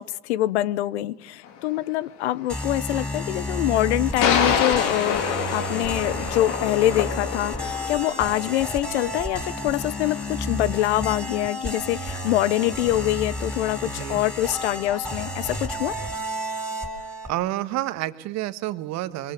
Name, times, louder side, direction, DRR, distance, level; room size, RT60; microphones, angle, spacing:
voice 1, 0.0-16.0, left 15 dB, 70° left, 22 dB, 0.9 m, -25 dB
sound 1, 1.5-1.6 4.2-8.5, left 7 dB, 55° left, 3.5 m, -26 dB
sound 2, 2.5-17.3, left 1 dB, 5° left, 4.8 m, -31 dB
voice 2, 13.9-14.2 17.2-19.3, right 15 dB, 50° right, 12 dB, 1.7 m, -29 dB
26.0 x 23.5 x 8.4 m, 0.77 s
hypercardioid pair, 85°, 35 cm